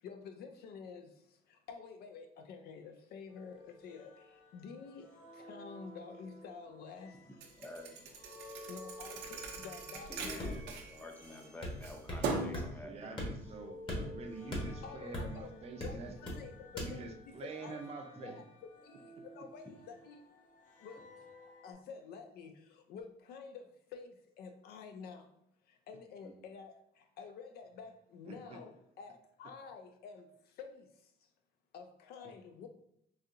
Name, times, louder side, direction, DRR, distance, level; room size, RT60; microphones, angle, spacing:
voice 1, 0.0-7.2 8.7-10.6 14.8-15.5 15.8-17.8 18.2-18.4 18.8-20.2 20.8-21.0 21.5-25.3 25.6-31.1 31.7-32.7, left 5 dB, 70° left, 6 dB, 0.4 m, -50 dB
sound 1, 3.3-13.0 13.4-21.7, left 1 dB, 50° left, 0.8 m, -55 dB
voice 2, 7.3-8.2 10.1-13.2 18.1-18.3 26.2-26.3, left 1 dB, 10° left, 3 dB, 0.6 m, -50 dB
Thump thud, 7.4-11.4 11.8-12.6, right 4 dB, 85° right, 0.6 m, -40 dB
sound 2, 10.4-10.8 11.6-12.3 12.5-12.7 13.2-13.6 13.9-15.4 15.8-16.4 16.8-16.9, left 1 dB, 30° left, 1.2 m, -39 dB
voice 3, 12.8-16.3 16.7-18.4 28.3-28.6, right 4 dB, 40° right, 3 dB, 0.5 m, -47 dB
3.9 x 2.7 x 2.6 m, 0.75 s
cardioid pair, 110°, 17 cm